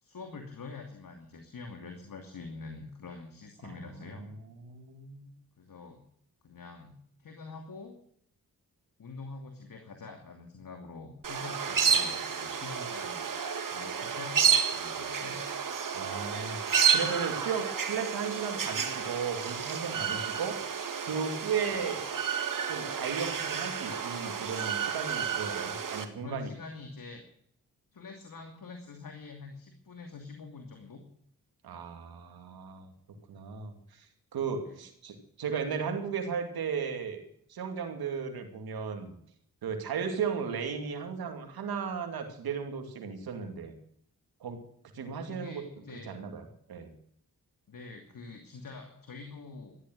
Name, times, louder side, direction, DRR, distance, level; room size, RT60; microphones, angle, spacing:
voice 1, 0.0-4.3 5.6-6.0 6.4-8.0 9.0-13.2 13.7-15.5 21.7-21.8 26.2-27.3 27.9-31.0 34.6-34.8 45.1-46.1 47.7-49.8, left 4 dB, 65° left, 4 dB, 2.7 m, -45 dB
voice 2, 3.6-5.3 15.9-20.6 21.0-22.0 22.7-26.5 31.6-32.9 33.3-34.1 34.3-37.2 37.5-39.1 39.6-43.7 44.4-44.6 44.9-46.4 46.7-46.9, right 6 dB, 90° right, 5 dB, 2.6 m, -35 dB
sound 1, 11.2-26.0, right 7 dB, 60° right, 2.0 m, -31 dB
14.5 x 11.0 x 7.9 m, 0.66 s
cardioid pair, 50°, 36 cm